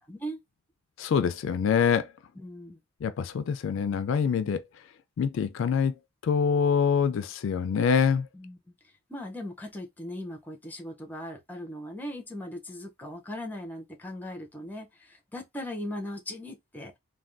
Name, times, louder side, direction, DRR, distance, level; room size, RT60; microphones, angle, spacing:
voice 1, 0.1-0.4 2.4-2.8 8.3-8.6 9.1-16.9, left 1 dB, 10° left, 0.5 m, -39 dB
voice 2, 1.0-2.1 3.0-4.6 5.2-5.9 6.2-8.3, left 6 dB, 65° left, 0.3 m, -25 dB
3.3 x 2.2 x 2.5 m
head